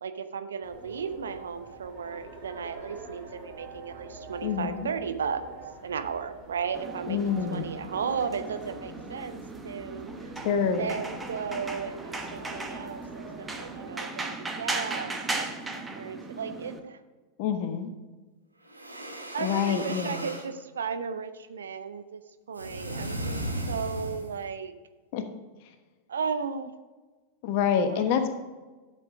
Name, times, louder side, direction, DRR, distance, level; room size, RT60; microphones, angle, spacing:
voice 1, 0.0-5.4 5.8-9.4 9.6-10.3 10.8-13.0 13.4-15.6 15.9-17.0 19.3-22.2 22.5-23.4 23.7-24.7 26.1-26.7 27.9-28.2, right 6 dB, 65° right, 9 dB, 0.7 m, -35 dB
sound 1, 0.6-13.9, right 3 dB, 25° right, 2.6 m, -46 dB
voice 2, 4.4-4.9 7.1-7.7 10.4-10.9 17.4-17.9 19.4-20.2 25.1-25.3 27.4-28.3, left 7 dB, 45° left, 7 dB, 1.1 m, -27 dB
sound 2, 6.7-16.8, right 3 dB, 10° right, 1.1 m, -37 dB
sound 3, 18.7-20.5 22.5-24.4, right 1 dB, 85° right, 1.2 m, -36 dB
12.0 x 6.8 x 3.6 m, 1.3 s
figure-of-eight pair, 90°, 0 cm